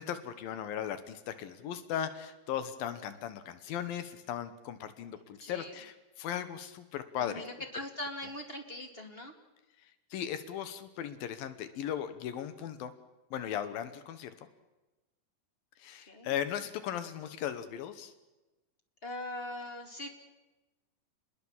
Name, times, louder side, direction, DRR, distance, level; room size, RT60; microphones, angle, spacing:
voice 1, 0.0-7.4 10.1-12.9 13.3-14.3 15.8-18.1, left 9 dB, 85° left, 11 dB, 3.0 m, -37 dB
voice 2, 5.1-5.8 7.1-9.3 16.1-16.3 19.0-20.1, left 1 dB, 20° left, 4 dB, 2.1 m, -41 dB
29.0 x 20.5 x 7.3 m, 1.1 s
omnidirectional pair, 4.0 m